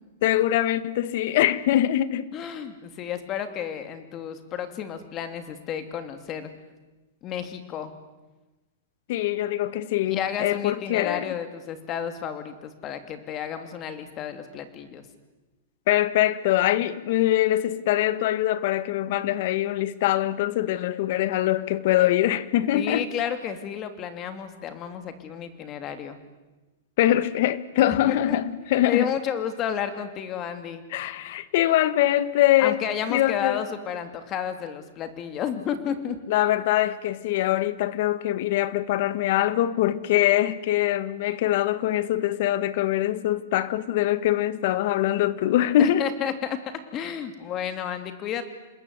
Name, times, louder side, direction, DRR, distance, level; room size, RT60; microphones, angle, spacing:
voice 1, 0.2-2.3 9.1-11.3 15.9-23.1 27.0-29.1 30.9-32.8 33.1-33.6 36.3-46.1, left 13 dB, 50° left, 1.4 m, -23 dB
voice 2, 2.3-6.5 7.2-7.9 10.1-15.0 22.7-26.2 27.9-28.4 28.8-30.8 32.6-36.2 45.8-46.6 46.9-48.4, left 8 dB, 25° left, 3.0 m, -31 dB
27.5 x 20.5 x 9.7 m
hypercardioid pair, 150°, 0 cm